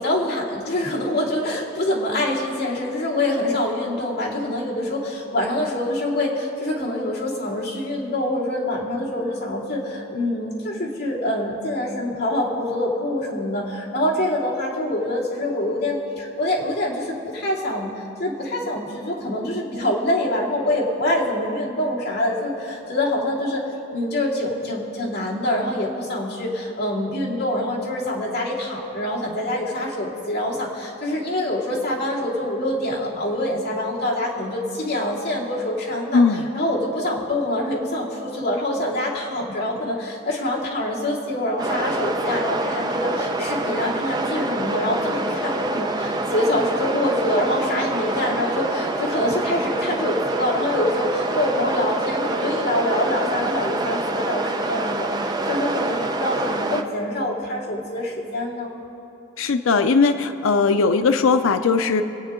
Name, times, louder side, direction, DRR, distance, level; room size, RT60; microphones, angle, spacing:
voice 1, 0.0-17.9 18.2-58.7, left 1 dB, 50° left, -6 dB, 2.8 m, -25 dB
voice 2, 36.1-36.5 59.4-62.0, left 4 dB, 80° left, 9 dB, 0.5 m, -19 dB
sound 1, 41.6-56.8, right 2 dB, 20° right, 0.5 m, -26 dB
26.0 x 8.8 x 3.7 m, 3.0 s
head